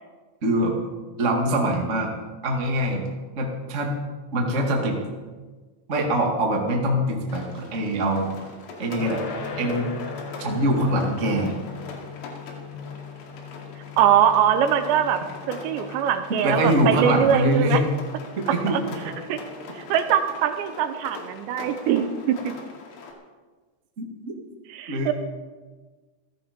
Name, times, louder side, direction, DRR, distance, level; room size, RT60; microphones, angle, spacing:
voice 1, 0.4-0.7 1.2-2.1 2.4-3.1 3.4-4.0 4.3-5.0 5.9-8.3 8.8-9.2 9.6-9.9 10.4-11.6 16.4-17.8 18.4-19.1 24.0-24.1 24.9-25.1, right 1 dB, 55° right, 1 dB, 0.8 m, -23 dB
Rain, 7.3-23.1, left 3 dB, 80° left, 4.5 m, -42 dB
sound 1, 8.9-19.9, left 4 dB, 60° left, 3.3 m, -39 dB
voice 2, 14.0-15.2 15.5-17.8 18.7-18.8 19.3-19.4 19.8-22.5 24.7-25.1, right 9 dB, 75° right, 9 dB, 2.9 m, -22 dB
16.0 x 14.5 x 5.2 m, 1.3 s
omnidirectional pair, 5.4 m